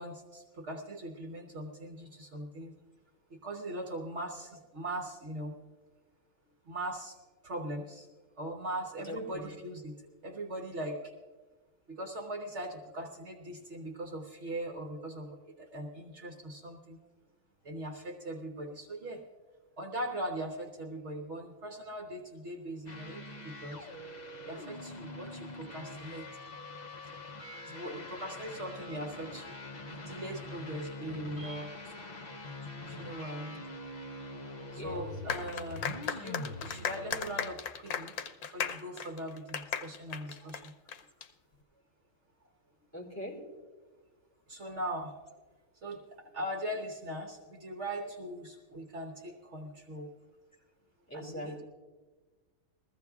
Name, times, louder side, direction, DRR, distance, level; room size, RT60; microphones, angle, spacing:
voice 1, 0.0-2.7 3.3-5.6 6.7-7.2 7.4-8.1 8.4-11.1 11.9-17.0 17.6-19.2 19.8-23.9 24.4-26.3 27.6-29.6 29.9-31.9 32.8-33.6 34.7-40.7 44.5-45.2 45.8-50.1 51.1-51.6, right 1 dB, 55° right, 1 dB, 1.2 m, -40 dB
voice 2, 9.1-9.5 26.6-26.9 34.8-35.4 42.9-43.4 51.1-51.6, equal, 10° left, -4 dB, 3.6 m, -42 dB
sound 1, 22.9-37.5, left 2 dB, 45° left, 0.6 m, -44 dB
sound 2, 35.3-41.3, left 7 dB, 90° left, 1.2 m, -36 dB
22.0 x 15.0 x 2.4 m, 1.3 s
omnidirectional pair, 1.5 m